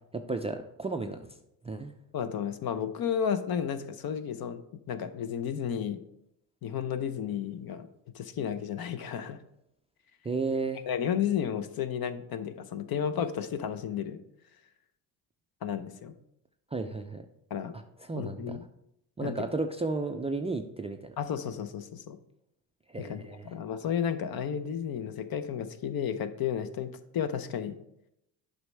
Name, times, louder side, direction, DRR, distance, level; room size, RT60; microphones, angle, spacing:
voice 1, 0.1-1.3 1.6-1.9 10.2-10.8 16.7-17.3 18.1-18.6 19.2-21.1 22.9-23.5, right 3 dB, 15° right, 5 dB, 0.3 m, -33 dB
voice 2, 2.1-6.0 6.6-7.9 8.1-9.4 10.9-14.2 15.6-16.1 17.5-17.7 18.1-18.6 19.2-19.4 21.2-22.2 23.0-27.8, left 8 dB, 50° left, 11 dB, 0.7 m, -32 dB
7.7 x 5.4 x 3.3 m, 0.81 s
supercardioid pair, 65°, 49 cm